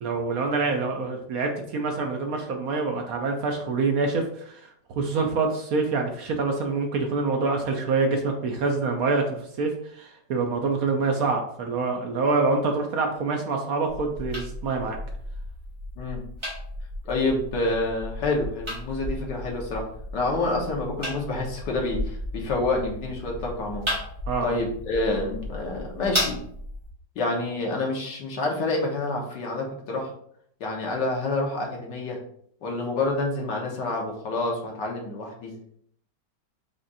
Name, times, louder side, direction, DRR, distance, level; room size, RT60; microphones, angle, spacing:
voice 1, 0.0-15.0 24.3-24.5, right 3 dB, 65° right, 3 dB, 1.0 m, -26 dB
sound 1, 13.9-26.9, left 1 dB, 20° right, 1.1 m, -34 dB
voice 2, 17.0-19.9 20.1-23.9 24.4-26.4 27.2-30.1 30.6-32.2 32.6-35.6, left 2 dB, 80° left, -1 dB, 1.7 m, -28 dB
5.0 x 2.5 x 4.0 m, 0.65 s
omnidirectional pair, 1.9 m